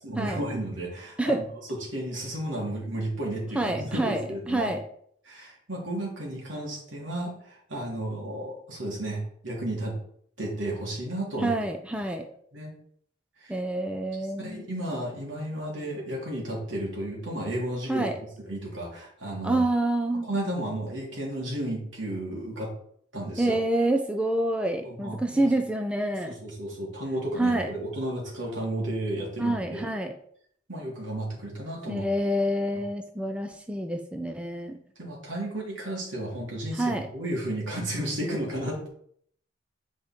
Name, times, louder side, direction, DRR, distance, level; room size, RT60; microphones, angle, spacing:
voice 1, 0.0-4.7 5.3-10.0 10.4-11.6 12.5-12.7 13.4-13.6 14.4-18.0 18.4-19.6 20.3-22.7 23.1-23.6 24.8-25.5 26.2-29.9 30.7-32.1 35.0-38.9, right 1 dB, 75° right, -3 dB, 3.1 m, -33 dB
voice 2, 3.5-4.8 11.4-12.2 13.5-14.7 17.9-18.2 19.4-20.3 23.4-26.3 27.4-27.7 29.4-30.1 31.9-34.8 36.8-37.1, right 1 dB, 5° right, 4 dB, 0.5 m, -27 dB
8.8 x 5.1 x 4.4 m, 0.66 s
head